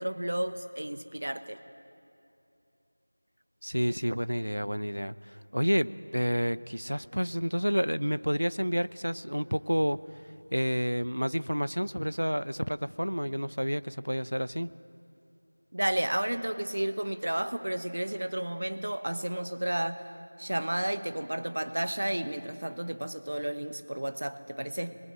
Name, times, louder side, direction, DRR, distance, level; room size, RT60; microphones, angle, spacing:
voice 1, 0.0-1.6 15.7-20.0 20.4-25.0, right 1 dB, 35° right, 10 dB, 0.9 m, -32 dB
voice 2, 3.6-5.2 5.5-10.0 10.5-14.7, equal, 90° right, 15 dB, 0.8 m, -29 dB
25.5 x 21.5 x 7.5 m, 2.8 s
figure-of-eight pair, 175°, 0 cm